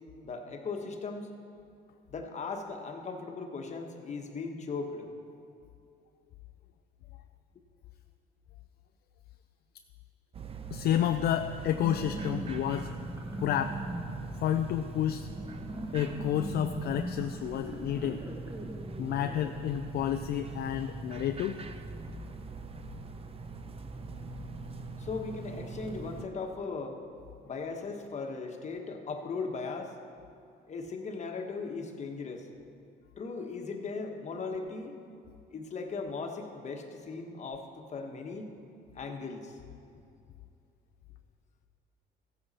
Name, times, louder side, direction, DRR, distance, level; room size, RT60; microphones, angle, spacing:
voice 1, 0.2-1.3 2.1-5.1 25.0-27.0 27.4-30.0 30.7-32.5 33.2-35.0 35.5-38.6 38.9-39.6, left 4 dB, 40° left, 3 dB, 1.3 m, -38 dB
sound 1, 10.3-26.2, right 3 dB, 30° right, 0.7 m, -42 dB
voice 2, 10.7-12.9 13.4-13.8 14.4-15.3 15.9-18.2 19.0-21.6, left 10 dB, 60° left, 7 dB, 0.4 m, -30 dB
sound 2, 11.6-19.5, right 1 dB, 15° right, 1.2 m, -41 dB
14.5 x 8.0 x 4.2 m, 2.5 s
cardioid pair, 95°, 18 cm